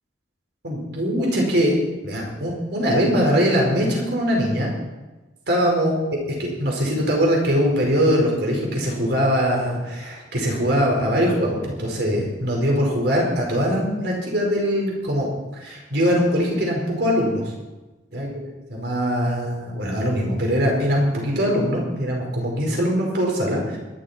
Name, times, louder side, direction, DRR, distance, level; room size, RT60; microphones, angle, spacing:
voice 1, 0.6-1.7 2.0-4.7 5.5-5.9 6.4-15.3 15.5-17.4 18.1-18.3 18.7-23.8, equal, 65° right, -1 dB, 5.1 m, -22 dB
24.0 x 12.0 x 4.5 m, 1.1 s
head